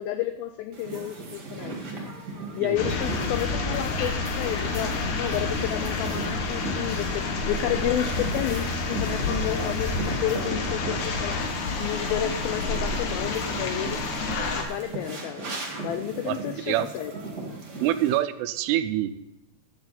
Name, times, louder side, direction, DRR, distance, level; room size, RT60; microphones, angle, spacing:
voice 1, 0.0-1.9 2.5-14.2 14.5-15.5 15.8-17.1, left 11 dB, 90° left, 9 dB, 2.1 m, -31 dB
sound 1, 0.7-18.2, right 2 dB, 35° right, 1.8 m, -38 dB
sound 2, 2.8-14.6, left 3 dB, 65° left, 2.0 m, -29 dB
voice 2, 16.3-16.9 17.8-19.1, right 13 dB, 85° right, 12 dB, 2.6 m, -26 dB
12.5 x 7.9 x 4.3 m, 0.90 s
omnidirectional pair, 4.8 m